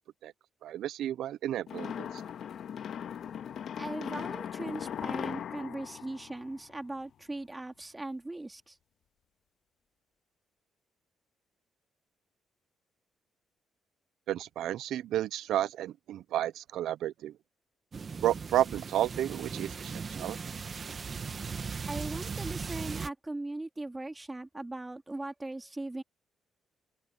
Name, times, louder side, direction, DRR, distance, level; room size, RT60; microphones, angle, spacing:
voice 1, 0.6-2.1 14.3-17.3 18.2-19.9 20.2-20.4, right 12 dB, 80° right, 0.5 m, -31 dB
sound 1, 1.7-7.0, left 8 dB, 65° left, 2.1 m, -39 dB
voice 2, 3.8-8.8 21.8-26.0, right 2 dB, 15° right, 3.0 m, -39 dB
sound 2, 17.9-23.1, right 5 dB, 40° right, 1.3 m, -38 dB
open air
cardioid pair, 90°, 0 cm